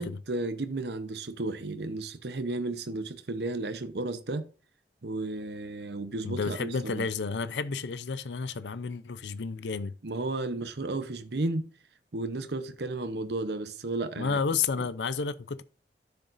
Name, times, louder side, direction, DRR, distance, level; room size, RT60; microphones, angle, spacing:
voice 1, 0.0-4.5 5.0-7.1 10.0-11.7 12.1-14.4, right 2 dB, 70° right, 0.8 m, -33 dB
voice 2, 6.2-9.9 14.2-15.6, left 5 dB, 85° left, 0.6 m, -31 dB
12.0 x 6.9 x 2.6 m
head